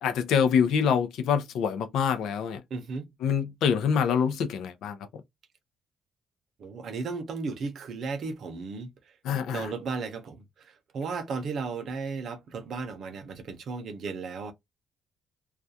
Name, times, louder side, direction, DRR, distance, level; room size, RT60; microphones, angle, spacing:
voice 1, 0.0-2.6 3.2-5.0 9.2-9.7, left 7 dB, 90° left, 0.5 m, -25 dB
voice 2, 2.7-3.1 6.6-8.9 9.5-14.5, right 4 dB, 50° right, 0.6 m, -35 dB
2.4 x 2.2 x 2.7 m
cardioid pair, 175°, 0 cm